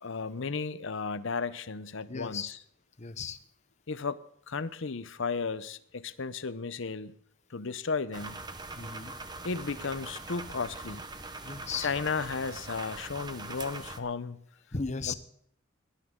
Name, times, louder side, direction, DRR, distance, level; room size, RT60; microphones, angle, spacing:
voice 1, 0.0-2.6 3.9-4.2 4.5-7.2 7.5-8.4 9.4-11.1 11.8-14.4 15.1-15.2, left 4 dB, 65° left, 0.7 m, -34 dB
voice 2, 2.1-2.5 3.0-3.4 8.8-9.1 11.4-11.9 14.7-15.1, left 5 dB, 35° left, 0.9 m, -36 dB
sound 1, 8.1-14.0, right 3 dB, 20° right, 0.9 m, -42 dB
18.0 x 11.5 x 3.8 m
head